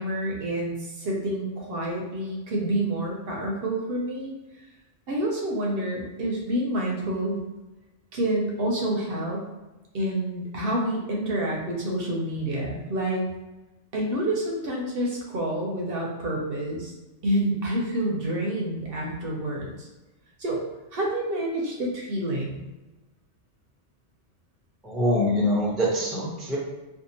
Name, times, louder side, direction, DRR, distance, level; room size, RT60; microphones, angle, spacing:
voice 1, 0.0-4.3 5.1-7.4 8.1-9.5 9.9-13.2 13.9-16.9 17.2-19.9 20.4-20.6 20.9-22.6, right 1 dB, 65° right, -1 dB, 0.7 m, -28 dB
voice 2, 24.8-26.6, left 1 dB, ahead, -5 dB, 0.4 m, -24 dB
2.6 x 2.4 x 2.6 m, 1.1 s
omnidirectional pair, 1.2 m